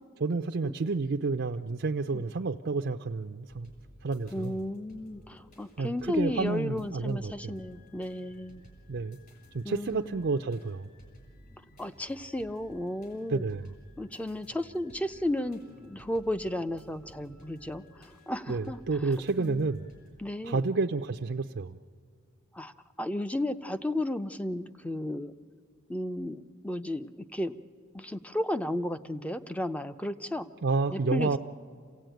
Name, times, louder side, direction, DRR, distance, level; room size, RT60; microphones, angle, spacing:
voice 1, 0.2-3.7 4.0-4.6 5.8-7.5 8.9-9.2 9.5-10.9 13.3-13.7 18.5-19.9 20.4-21.8 30.6-31.4, right 4 dB, 55° right, 5 dB, 0.5 m, -30 dB
sound 1, 3.5-20.1, equal, 45° left, 5.4 m, -55 dB
voice 2, 4.3-8.6 9.6-10.3 11.8-13.4 14.0-19.7 20.2-20.6 22.5-25.3 25.9-27.6 27.9-30.5 30.9-31.4, left 1 dB, 5° left, 11 dB, 0.5 m, -34 dB
27.0 x 16.5 x 9.1 m, 2.1 s
head